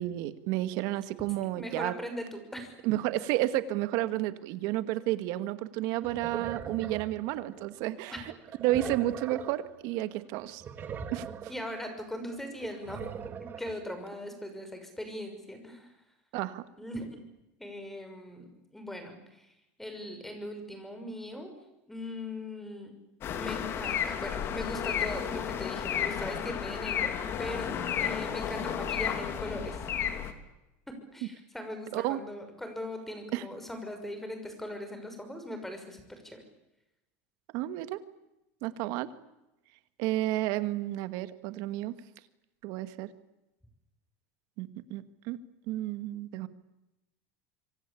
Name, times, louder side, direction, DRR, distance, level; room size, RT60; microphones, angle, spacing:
voice 1, 0.0-1.9 2.8-8.3 8.6-10.6 11.1-11.2 16.3-16.6 31.9-32.2 33.3-33.5 37.5-38.0 38.6-39.1 40.0-41.9 42.6-43.1 44.6-45.4 45.7-46.5, right 15 dB, 60° right, 12 dB, 2.0 m, -31 dB
voice 2, 1.6-2.7 8.1-8.2 11.5-13.3 13.6-15.9 16.8-17.2 17.6-19.5 19.8-21.5 21.9-22.9 23.4-27.1 27.4-30.1 31.1-36.4, left 1 dB, 5° left, 7 dB, 6.2 m, -40 dB
sound 1, 5.8-7.8 8.3-9.7 10.0-10.1 10.3-11.7 12.2-13.7, right 8 dB, 30° right, 2.6 m, -41 dB
sound 2, 23.2-30.3, left 8 dB, 35° left, 3.0 m, -32 dB
26.0 x 25.5 x 8.7 m, 0.94 s
supercardioid pair, 140°, 7 cm